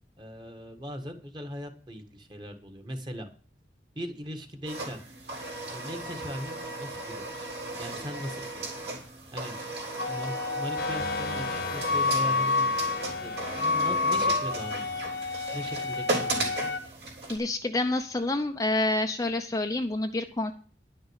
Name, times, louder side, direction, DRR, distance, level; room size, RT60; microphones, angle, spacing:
voice 1, 0.2-3.3 4.0-5.0 5.7-7.5 7.8-8.6 9.3-9.5 10.1-12.7 13.2-15.0 15.5-16.7, equal, 25° right, 6 dB, 1.7 m, -39 dB
sound 1, 4.7-17.4, right 2 dB, 65° right, 3.6 m, -36 dB
Wind instrument woodwind instrument, 10.0-16.8, left 4 dB, 75° left, 0.9 m, -29 dB
sound 2, 10.8-16.2, left 5 dB, 55° left, 1.2 m, -39 dB
voice 2, 17.3-20.5, left 2 dB, 20° left, 5 dB, 0.6 m, -28 dB
11.0 x 6.4 x 8.1 m, 0.41 s
head